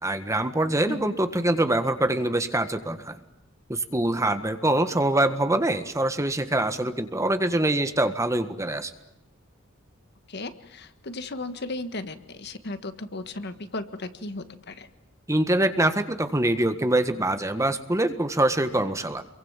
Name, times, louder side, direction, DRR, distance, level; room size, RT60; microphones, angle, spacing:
voice 1, 0.0-3.2 3.7-8.9 15.3-19.2, right 1 dB, 15° right, 9 dB, 1.6 m, -24 dB
voice 2, 10.3-14.9, left 2 dB, 55° left, 10 dB, 1.6 m, -35 dB
28.5 x 23.5 x 7.4 m, 0.88 s
head